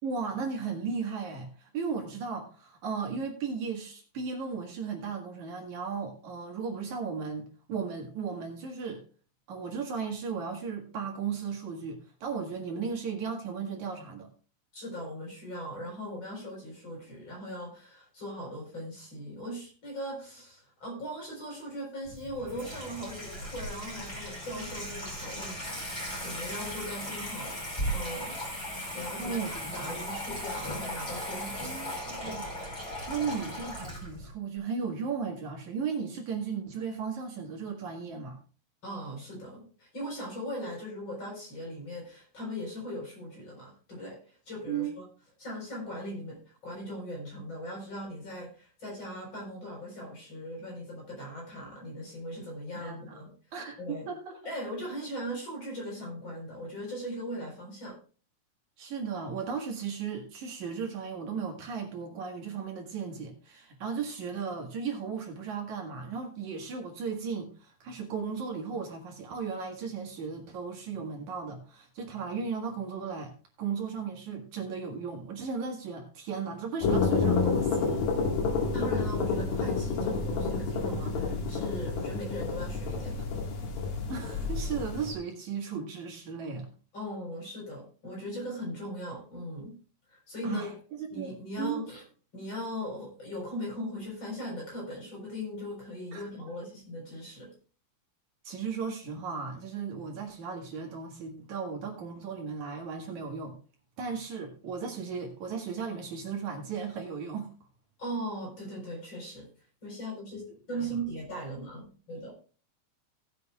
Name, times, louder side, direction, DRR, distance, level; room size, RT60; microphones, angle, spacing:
voice 1, 0.0-9.0 9.5-14.3 29.2-30.0 31.6-32.5 33.1-38.4 44.7-44.9 52.7-53.2 53.5-54.4 58.8-77.9 84.1-86.7 90.4-91.8 96.1-96.3 98.4-103.6 104.0-107.5 110.7-111.0, right 5 dB, 65° right, 2 dB, 3.0 m, -36 dB
voice 2, 14.7-27.6 27.9-28.4 28.9-32.2 38.8-45.0 45.4-53.3 53.8-54.1 54.4-58.0 78.7-83.3 86.9-89.8 90.1-90.8 91.1-92.0 92.3-97.5 108.0-109.5 109.8-112.3, equal, 35° left, -2 dB, 4.9 m, -39 dB
Water tap faucet / Sink (filling or washing), 22.1-34.3, equal, 15° left, 5.2 m, -37 dB
sound 1, 76.8-85.1, left 4 dB, 85° left, 3.6 m, -29 dB
18.5 x 8.2 x 2.4 m, 0.39 s
omnidirectional pair, 3.9 m